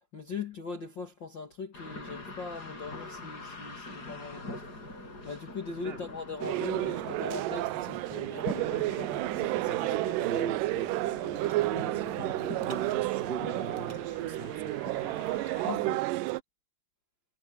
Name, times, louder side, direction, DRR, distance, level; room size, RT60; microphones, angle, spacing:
voice 1, 0.1-4.9 5.2-8.9 9.3-9.7 10.0-10.3 15.7-16.1, left 4 dB, 40° left, 1.8 m, -40 dB
sound 1, 1.7-15.7, left 2 dB, 25° left, 7.5 m, -44 dB
sound 2, 6.4-16.4, right 18 dB, 90° right, 1.9 m, -31 dB
voice 2, 8.1-8.7 9.6-14.9, right 5 dB, 15° right, 3.1 m, -41 dB
sound 3, 11.5-12.2 12.7-13.6 13.9-15.5, right 3 dB, 35° right, 8.1 m, -55 dB
omnidirectional pair, 4.4 m